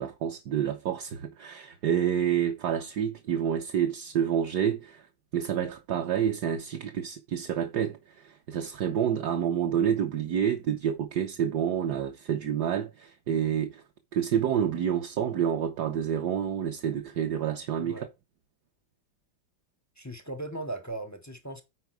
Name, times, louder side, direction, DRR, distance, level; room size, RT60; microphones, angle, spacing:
voice 1, 0.0-5.1 5.3-13.8 14.1-18.1, right 9 dB, 65° right, 1.5 m, -28 dB
voice 2, 20.0-21.6, right 2 dB, 15° left, 0.6 m, -38 dB
9.3 x 4.7 x 4.6 m
omnidirectional pair, 2.0 m